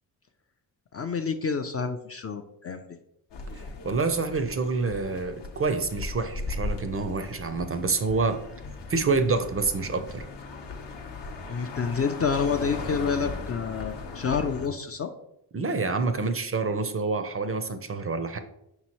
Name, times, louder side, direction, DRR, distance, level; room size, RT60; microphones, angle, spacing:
voice 1, 0.9-2.9 11.5-15.1, left 5 dB, 30° left, 6 dB, 0.4 m, -28 dB
sound 1, 3.3-14.7, left 4 dB, 60° left, 0.8 m, -38 dB
voice 2, 3.8-8.4 8.9-10.2 15.5-18.4, right 4 dB, 30° right, 9 dB, 0.5 m, -27 dB
5.3 x 3.0 x 2.9 m, 0.81 s
supercardioid pair, 45°, 48 cm